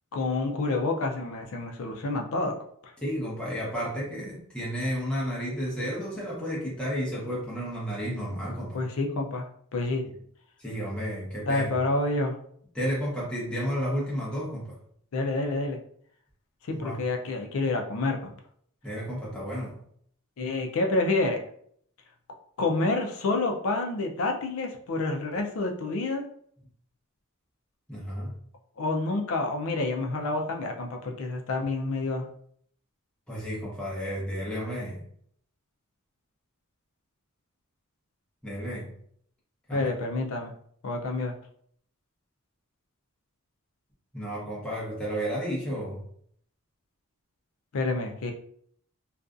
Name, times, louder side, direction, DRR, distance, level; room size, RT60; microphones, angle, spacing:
voice 1, 0.1-2.6 2.8-2.9 8.7-9.5 9.7-10.0 11.5-12.4 15.1-15.8 16.7-18.3 20.4-21.4 22.6-26.2 28.8-32.3 39.7-40.5 40.8-41.3 47.7-48.3, left 2 dB, 65° left, 3 dB, 0.4 m, -28 dB
voice 2, 3.0-8.8 10.6-11.8 12.7-14.8 16.7-17.0 18.8-19.8 27.9-28.3 33.3-35.0 38.4-39.0 39.7-39.9 44.1-46.0, equal, 5° left, -6 dB, 0.9 m, -32 dB
2.5 x 2.3 x 2.4 m, 0.64 s
head